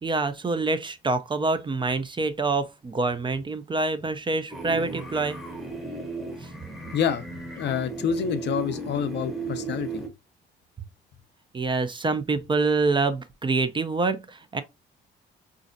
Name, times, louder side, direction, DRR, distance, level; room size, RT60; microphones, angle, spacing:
voice 1, 0.0-5.5 6.4-6.5 11.5-14.6, right 3 dB, 25° right, 0.4 m, -26 dB
sound 1, 4.5-10.1, right 4 dB, ahead, 0.9 m, -35 dB
voice 2, 6.9-7.2 7.6-10.0, left 8 dB, 60° left, 0.5 m, -27 dB
4.0 x 2.5 x 2.5 m
cardioid pair, 90°, 20 cm